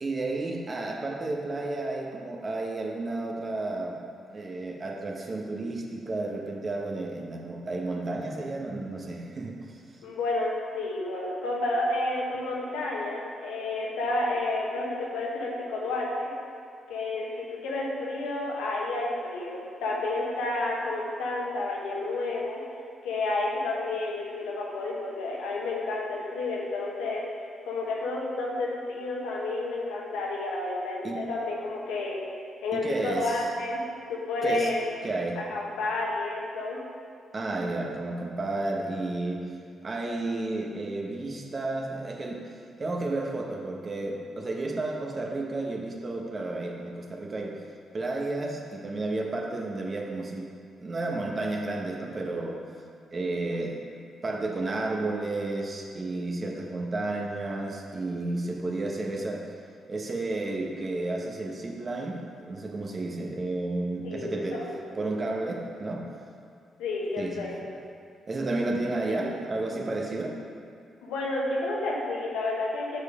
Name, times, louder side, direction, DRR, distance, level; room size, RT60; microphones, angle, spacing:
voice 1, 0.0-4.0 4.3-9.5 31.0-31.2 32.7-33.5 34.4-34.7 35.0-35.4 37.3-39.4 39.8-42.4 42.8-47.6 47.9-50.5 50.8-52.6 53.1-59.4 59.9-64.6 64.9-66.0 67.2-67.5 68.3-70.4, right 2 dB, 40° right, 0 dB, 1.1 m, -32 dB
voice 2, 10.0-16.3 16.9-22.6 23.0-27.2 27.6-32.2 32.6-33.8 34.1-34.8 35.4-36.8 64.0-64.8 66.8-67.6 69.1-69.2 71.0-73.0, left 2 dB, 85° left, -3 dB, 1.2 m, -30 dB
6.5 x 5.0 x 4.9 m, 2.3 s
supercardioid pair, 60°, 0 cm